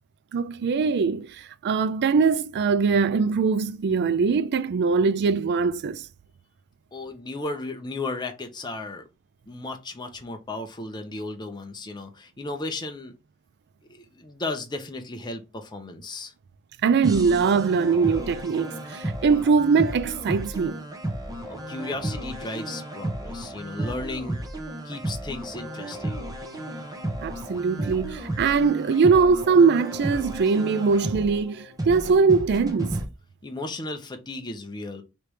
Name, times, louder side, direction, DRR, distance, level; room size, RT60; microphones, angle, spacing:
voice 1, 0.3-6.1 16.8-20.8 27.2-32.9, right 5 dB, 50° right, 0.4 m, -22 dB
voice 2, 6.9-9.0 9.5-13.1 13.9-16.3 21.7-24.4 24.8-26.2 33.4-35.0, left 2 dB, 20° left, 0.6 m, -35 dB
sound 1, 17.0-33.0, right 1 dB, 15° right, 0.9 m, -33 dB
3.3 x 3.0 x 4.7 m
head